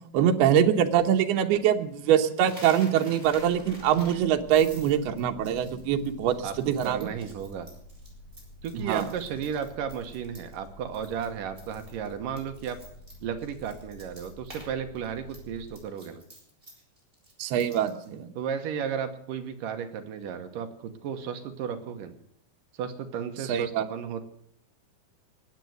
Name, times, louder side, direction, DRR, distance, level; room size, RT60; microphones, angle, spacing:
voice 1, 0.1-7.1 8.7-9.1 17.4-18.3 23.5-23.8, right 9 dB, 85° right, 5 dB, 3.0 m, -24 dB
Coin (dropping), 2.4-10.7 10.9-11.3 11.6-14.7 14.9-18.1, right 1 dB, 15° right, 4.4 m, -49 dB
sound 1, 3.2-15.7, left 1 dB, 75° left, 6.1 m, -49 dB
voice 2, 6.4-7.7 8.6-12.8 13.2-16.2 18.3-22.2 22.7-24.2, right 7 dB, 65° right, 7 dB, 2.6 m, -34 dB
20.0 x 8.4 x 7.9 m, 0.69 s
omnidirectional pair, 4.5 m